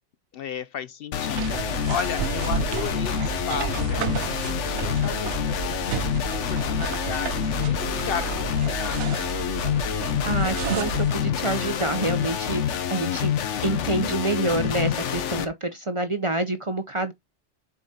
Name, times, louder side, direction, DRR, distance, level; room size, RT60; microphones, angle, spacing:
voice 1, 0.3-9.3, left 8 dB, 65° left, 0.7 m, -35 dB
sound 1, 1.1-15.4, left 8 dB, 80° left, 1.1 m, -27 dB
sound 2, 1.3-11.2, right 9 dB, 80° right, 0.9 m, -31 dB
voice 2, 10.2-13.3 13.6-17.1, right 2 dB, 35° right, 0.6 m, -27 dB
7.3 x 4.9 x 2.8 m
omnidirectional pair, 1.2 m